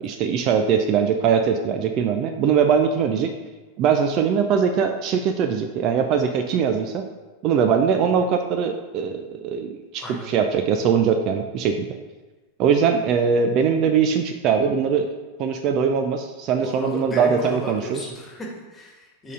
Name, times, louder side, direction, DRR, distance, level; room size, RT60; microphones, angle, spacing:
voice 1, 0.0-3.3 3.8-7.0 7.4-11.9 12.6-15.1 15.4-18.0, right 6 dB, 40° right, 6 dB, 0.4 m, -21 dB
voice 2, 10.0-10.3 16.6-19.3, left 1 dB, 15° left, -1 dB, 1.5 m, -34 dB
6.5 x 3.9 x 4.9 m, 1.2 s
figure-of-eight pair, 90°, 0 cm